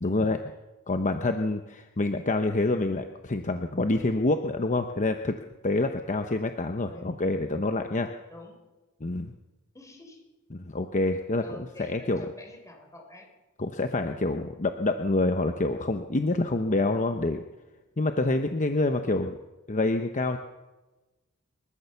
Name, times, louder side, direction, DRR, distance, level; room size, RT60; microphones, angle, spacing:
voice 1, 0.0-0.4 0.9-5.3 5.6-8.1 9.0-9.3 10.5-12.2 13.6-17.4 18.0-19.4 19.7-20.4, left 2 dB, 35° left, 7 dB, 0.9 m, -27 dB
voice 2, 6.8-7.2 8.3-8.6 9.7-10.2 11.4-13.3 19.1-19.4, left 1 dB, 15° left, 3 dB, 4.4 m, -48 dB
27.0 x 13.5 x 7.1 m, 1.1 s
head